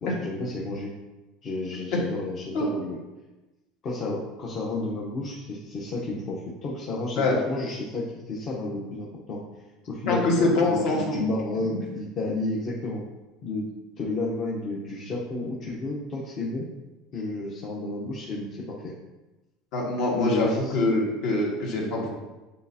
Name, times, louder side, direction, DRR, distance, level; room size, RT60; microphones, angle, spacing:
voice 1, 0.0-0.9 1.4-3.0 3.8-9.4 9.9-13.1 13.4-16.7 17.1-18.9 20.1-20.9, left 2 dB, 35° left, -4 dB, 0.9 m, -31 dB
voice 2, 10.1-11.2 19.7-20.5 20.7-22.1, left 2 dB, 55° left, -2 dB, 1.7 m, -24 dB
8.6 x 4.2 x 2.8 m, 1.1 s
cardioid pair, 160°, 0 cm